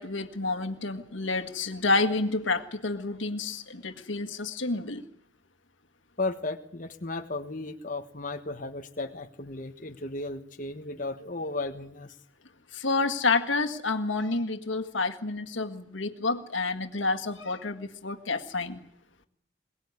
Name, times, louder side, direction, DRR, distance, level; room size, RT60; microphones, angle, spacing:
voice 1, 0.0-5.0 12.7-18.8, left 3 dB, 85° left, 8 dB, 1.8 m, -29 dB
voice 2, 6.2-12.1, left 2 dB, 45° left, 5 dB, 1.3 m, -35 dB
22.5 x 19.5 x 9.6 m, 0.70 s
head